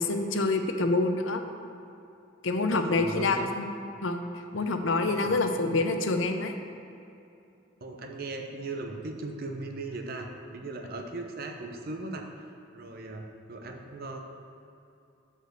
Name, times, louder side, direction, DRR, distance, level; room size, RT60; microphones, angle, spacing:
voice 1, 0.0-1.4 2.4-3.7 4.0-4.2 4.5-6.5, left 3 dB, 70° left, 6 dB, 0.6 m, -26 dB
voice 2, 2.7-3.5 5.0-5.3 7.8-12.2 12.7-14.2, right 2 dB, 50° right, 4 dB, 0.7 m, -38 dB
6.6 x 5.0 x 6.5 m, 2.6 s
head